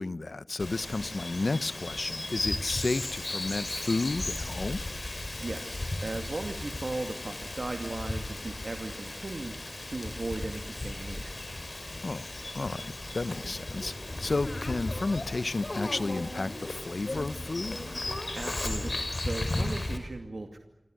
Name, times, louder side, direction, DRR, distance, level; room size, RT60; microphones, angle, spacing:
voice 1, 0.0-4.8 12.0-12.3 12.5-13.9 14.2-17.8, left 3 dB, 70° left, 0.9 m, -32 dB
Bird vocalization bird call bird song, 0.6-20.0, left 2 dB, 55° left, 5.5 m, -35 dB
voice 2, 5.4-11.4 18.4-20.6, right 2 dB, 70° right, 2.5 m, -37 dB
29.0 x 24.5 x 7.9 m
wide cardioid pair, 40°, 0 cm